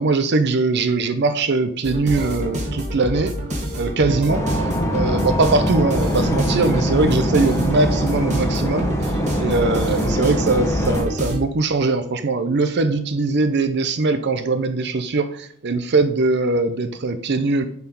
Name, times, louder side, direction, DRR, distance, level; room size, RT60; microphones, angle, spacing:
voice 1, 0.0-3.3 3.8-17.6, right 3 dB, 50° right, 10 dB, 0.6 m, -21 dB
sound 1, 1.8-11.4, equal, 30° right, 2.1 m, -27 dB
sound 2, 4.3-11.0, equal, 15° left, 1.2 m, -23 dB
10.5 x 4.7 x 5.3 m, 0.63 s
head